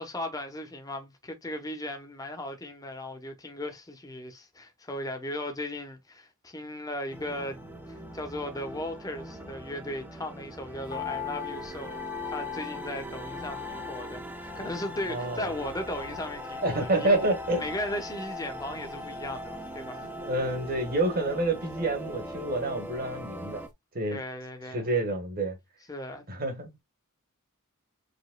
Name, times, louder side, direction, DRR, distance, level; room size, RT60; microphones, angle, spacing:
voice 1, 0.0-7.6 7.9-14.3 14.5-17.2 17.6-20.1 24.1-24.9 25.9-26.3, left 1 dB, 15° left, 1.0 m, -37 dB
sound 1, 7.1-23.7, equal, 10° right, 0.8 m, -41 dB
sound 2, 10.9-23.2 23.4-23.5, left 11 dB, 35° left, 1.2 m, -43 dB
voice 2, 15.1-15.5 16.6-17.7 20.1-23.6 23.9-24.2 24.7-25.6 26.3-26.7, right 2 dB, 40° right, 1.5 m, -28 dB
5.1 x 3.6 x 2.2 m
head